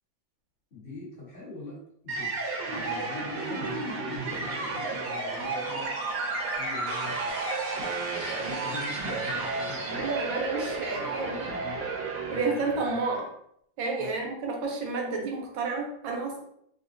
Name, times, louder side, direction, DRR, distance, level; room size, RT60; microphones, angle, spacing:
voice 1, 0.7-2.4 2.7-5.9 6.6-7.2 8.4-10.1 11.6-11.8 12.3-13.0 14.0-14.1, left 3 dB, 35° left, -6 dB, 1.2 m, -43 dB
sound 1, 2.1-13.2, right 3 dB, 60° right, 1.0 m, -32 dB
voice 2, 9.9-11.5 12.3-13.2 13.8-16.3, right 3 dB, 85° right, 0 dB, 1.5 m, -30 dB
3.6 x 2.4 x 2.5 m, 0.70 s
omnidirectional pair, 2.0 m